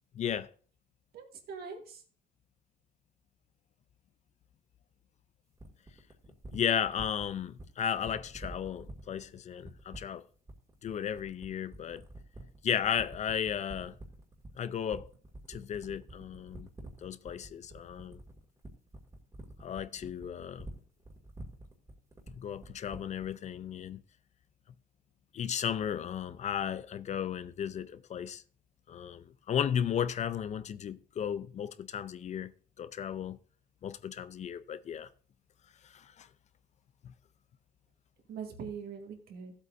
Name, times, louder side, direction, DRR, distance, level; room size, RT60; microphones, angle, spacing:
voice 1, 0.1-0.5 6.5-10.2 10.8-12.0 12.6-14.0 14.6-15.1 15.5-16.7 17.0-18.2 19.6-20.7 22.3-24.0 25.3-28.4 28.9-32.5 32.8-33.4 33.8-35.1 35.8-36.3 37.0-37.1, left 8 dB, 45° left, 0.5 m, -34 dB
voice 2, 1.1-2.0 38.3-39.5, right 6 dB, 65° right, 2.2 m, -42 dB
sound 1, 5.6-23.3, right 1 dB, 20° right, 2.2 m, -47 dB
14.5 x 8.2 x 2.6 m
cardioid pair, 110°, 17 cm